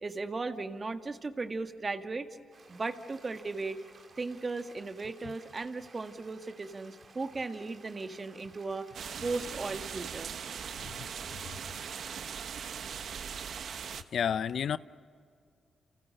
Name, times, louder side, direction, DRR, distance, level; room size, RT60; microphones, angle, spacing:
voice 1, 0.0-2.3 2.7-3.8 4.2-8.9 9.2-10.3, right 3 dB, 40° right, 1.7 m, -36 dB
sound 1, 2.5-12.3, right 4 dB, 55° right, 3.3 m, -57 dB
sound 2, 8.9-14.0, right 7 dB, 70° right, 1.1 m, -40 dB
voice 2, 14.1-14.8, left 8 dB, 70° left, 0.6 m, -31 dB
30.0 x 28.5 x 6.6 m
supercardioid pair, 60°, 0 cm